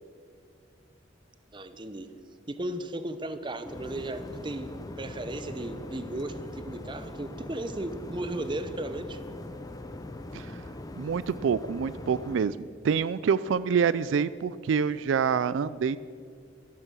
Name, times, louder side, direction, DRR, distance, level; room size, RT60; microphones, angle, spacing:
voice 1, 1.5-2.1 2.5-9.2, right 1 dB, 25° right, 10 dB, 0.7 m, -35 dB
sound 1, 3.6-12.4, left 1 dB, 20° left, 0.6 m, -41 dB
voice 2, 11.0-16.0, right 6 dB, 85° right, 17 dB, 0.3 m, -27 dB
12.5 x 12.0 x 6.2 m, 2.2 s
head